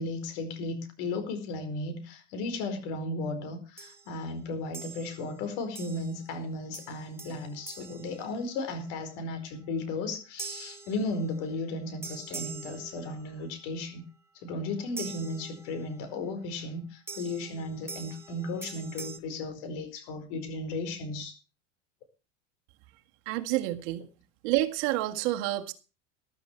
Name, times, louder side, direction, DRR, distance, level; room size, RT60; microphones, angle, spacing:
voice 1, 0.0-14.0 14.3-21.4, left 2 dB, 60° left, 4.8 m, -35 dB
sound 1, 3.8-4.2 4.7-5.3 5.8-6.3 6.7-8.9 10.4-11.6 12.0-13.5 15.0-16.0 17.1-19.2, right 4 dB, 5° right, 1.7 m, -44 dB
voice 2, 23.3-24.1 24.4-25.7, right 16 dB, 60° right, 1.9 m, -28 dB
14.0 x 12.5 x 4.5 m
supercardioid pair, 120°, 38 cm